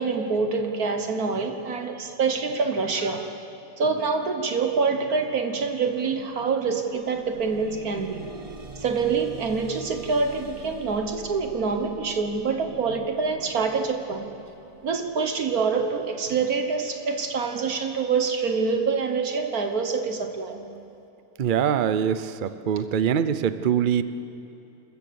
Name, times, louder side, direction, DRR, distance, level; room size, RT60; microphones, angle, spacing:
voice 1, 0.0-3.3 3.8-8.2 8.8-14.3 14.8-20.6, right 4 dB, 65° right, 5 dB, 1.7 m, -26 dB
sound 1, 6.1-6.3 6.6-17.7 18.4-18.5 19.0-19.1, right 4 dB, 30° right, 0.7 m, -45 dB
voice 2, 21.4-24.0, right 8 dB, 85° right, 12 dB, 0.4 m, -23 dB
26.5 x 14.0 x 6.9 m, 2.9 s
omnidirectional pair, 1.8 m